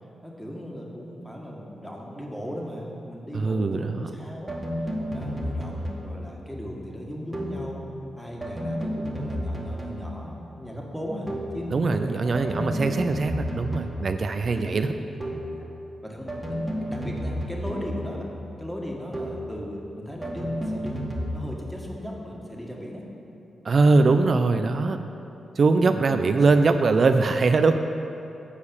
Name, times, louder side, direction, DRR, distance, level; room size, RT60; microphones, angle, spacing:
voice 1, 0.2-4.6 5.1-7.8 8.2-13.0 14.5-14.9 15.2-15.4 16.0-18.3 18.6-21.0 21.3-23.1 23.8-24.0 24.6-24.7 25.8-26.4, equal, 5° left, -2 dB, 1.8 m, -37 dB
voice 2, 3.3-4.1 11.7-14.9 23.6-25.0 25.6-27.7, right 3 dB, 55° right, 8 dB, 0.4 m, -21 dB
sound 1, 4.5-6.3 7.3-7.7 8.4-10.3 11.3-11.7 12.3-14.2 15.2-15.6 16.3-18.2 19.1-19.5 20.2-21.4, equal, 15° right, 1.6 m, -31 dB
8.4 x 4.8 x 7.1 m, 2.8 s
supercardioid pair, 50°, 0 cm